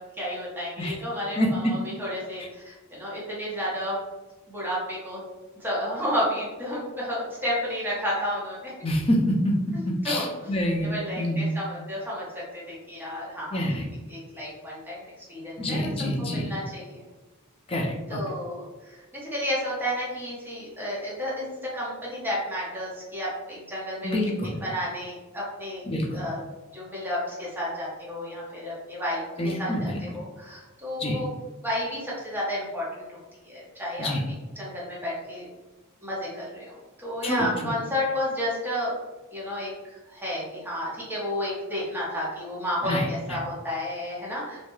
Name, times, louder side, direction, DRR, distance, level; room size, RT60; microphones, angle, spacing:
voice 1, 0.0-4.0 4.5-5.2 5.6-8.7 9.7-10.5 10.8-13.8 14.1-15.9 16.2-17.0 18.1-24.2 24.6-25.9 26.1-26.4 26.7-31.3 31.6-33.2 33.4-34.1 34.6-35.5 36.0-38.9 39.3-44.6, equal, 10° right, -7 dB, 0.7 m, -32 dB
voice 2, 1.4-1.7 8.8-9.5 10.0-11.5 13.5-13.8 15.6-16.5 17.7-18.2 24.0-24.6 25.9-26.3 29.4-30.0 31.0-31.2 34.0-34.2 37.2-37.7 42.8-43.4, equal, 25° left, 0 dB, 0.4 m, -27 dB
2.2 x 2.1 x 3.0 m, 1.2 s
head